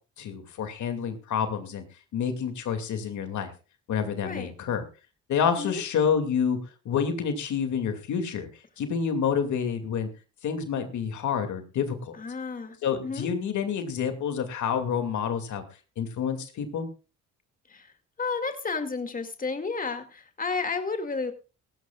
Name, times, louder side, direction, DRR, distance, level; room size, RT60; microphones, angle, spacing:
voice 1, 0.2-1.8 2.1-3.5 3.9-4.8 5.3-6.6 6.8-8.5 8.8-10.1 10.4-12.2 12.8-15.6 16.0-16.9, left 7 dB, 70° left, 7 dB, 2.5 m, -28 dB
voice 2, 12.2-12.8 13.0-13.3 17.7-17.9 18.2-21.3, left 4 dB, 30° left, 6 dB, 2.3 m, -31 dB
18.0 x 15.5 x 2.4 m, 0.33 s
cardioid pair, 90°, 30 cm